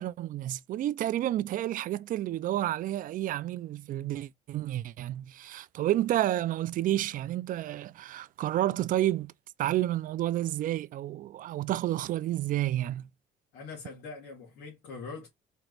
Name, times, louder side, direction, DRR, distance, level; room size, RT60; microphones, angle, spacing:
voice 1, 0.0-9.3 9.6-13.1, right 13 dB, 55° right, 0.4 m, -30 dB
voice 2, 13.5-15.3, left 4 dB, 80° left, 2.4 m, -43 dB
4.5 x 2.9 x 3.9 m
cardioid pair, 110°, 17 cm